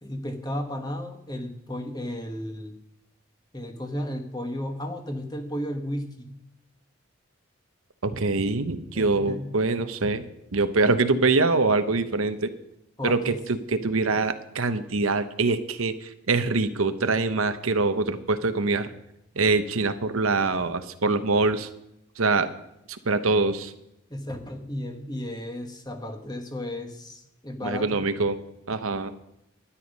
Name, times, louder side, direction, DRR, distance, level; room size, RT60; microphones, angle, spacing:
voice 1, 0.0-2.8 3.5-6.4 8.9-9.5 13.0-13.4 24.1-28.0, left 1 dB, 20° left, 6 dB, 1.3 m, -34 dB
voice 2, 8.0-10.2 10.5-12.5 13.0-18.9 19.4-21.7 22.2-22.5 23.1-23.7 27.6-28.4 28.7-29.1, right 3 dB, 80° right, 10 dB, 0.9 m, -24 dB
12.5 x 10.0 x 5.4 m, 0.83 s
head